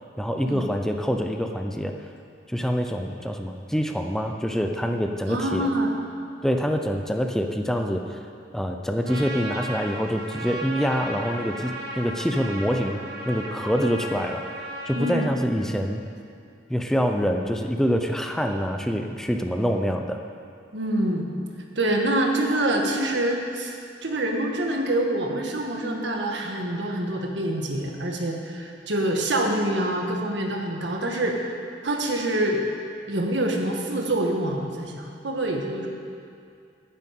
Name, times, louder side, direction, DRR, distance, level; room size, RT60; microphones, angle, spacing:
voice 1, 0.2-2.1 2.5-5.7 6.4-8.3 8.5-14.5 14.9-16.1 16.7-20.2, equal, 5° left, 4 dB, 0.5 m, -26 dB
voice 2, 5.3-5.9 15.0-15.3 20.7-21.3 21.8-23.8 24.0-31.4 31.8-32.6 33.1-35.9, right 1 dB, 85° right, 1 dB, 1.5 m, -26 dB
Trumpet, 9.0-15.3, right 1 dB, 60° right, 1.6 m, -35 dB
9.7 x 7.6 x 8.4 m, 2.4 s
head